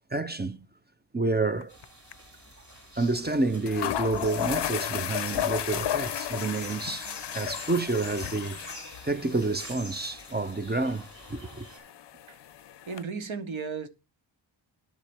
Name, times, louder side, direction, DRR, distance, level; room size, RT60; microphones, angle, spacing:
voice 1, 0.1-0.7 1.1-1.8 3.0-8.6 9.0-11.7, right 3 dB, 20° right, 0.7 m, -29 dB
sound 1, 1.6-1.8 2.1-2.2 3.3-3.4 3.7-13.0, left 11 dB, 65° left, 0.5 m, -34 dB
sound 2, 1.7-11.8, equal, 40° right, 5.4 m, -47 dB
voice 2, 12.9-13.9, right 5 dB, 80° right, 1.1 m, -36 dB
11.5 x 4.3 x 6.9 m
wide cardioid pair, 75°, 46 cm